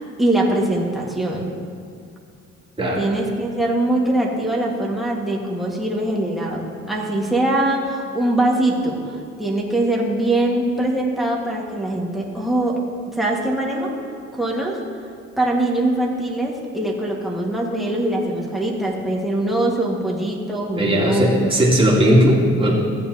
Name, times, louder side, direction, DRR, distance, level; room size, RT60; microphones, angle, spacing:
voice 1, 0.2-1.5 3.0-12.8 13.1-14.0 14.3-14.8 15.4-21.4, right 1 dB, ahead, -4 dB, 1.7 m, -22 dB
voice 2, 20.8-22.7, equal, 20° right, -5 dB, 2.6 m, -17 dB
15.0 x 8.5 x 2.9 m, 2.4 s
cardioid pair, 90°, 30 cm